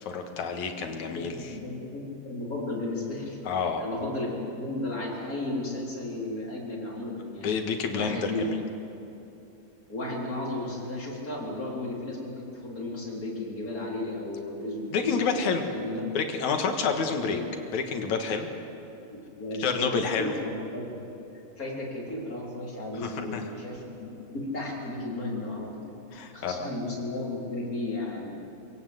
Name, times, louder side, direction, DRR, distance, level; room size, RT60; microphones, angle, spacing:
voice 1, 0.0-1.5 3.5-3.8 7.4-8.6 14.9-15.7 16.1-17.4 17.7-18.5 19.6-20.3 22.9-23.4 26.1-26.7, left 5 dB, 60° left, 5 dB, 2.7 m, -29 dB
voice 2, 0.8-7.5 7.9-8.5 9.9-16.0 17.2-17.4 19.1-19.9 20.2-21.1 21.6-28.4, left 2 dB, 25° left, -3 dB, 4.1 m, -34 dB
25.5 x 17.0 x 8.0 m, 2.9 s
omnidirectional pair, 4.0 m